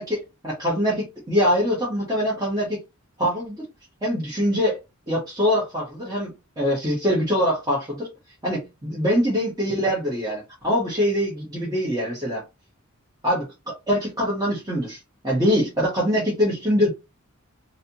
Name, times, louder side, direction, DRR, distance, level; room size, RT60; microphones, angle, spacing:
voice 1, 0.0-2.8 3.2-3.6 4.0-4.8 5.1-8.1 8.4-12.4 13.2-16.9, equal, 15° right, 1.2 m, -23 dB
3.3 x 2.7 x 2.8 m
head